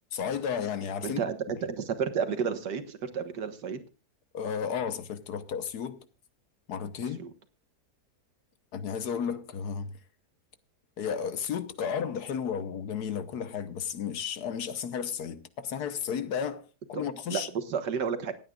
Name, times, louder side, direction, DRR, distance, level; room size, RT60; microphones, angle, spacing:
voice 1, 0.1-1.2 1.6-1.7 4.3-6.1 6.7-7.2 8.7-10.0 11.0-17.5, left 7 dB, 75° left, 1.5 m, -33 dB
voice 2, 1.0-3.8 7.2-7.3 17.3-18.3, right 6 dB, 85° right, 2.0 m, -31 dB
26.5 x 9.1 x 2.4 m
omnidirectional pair, 1.8 m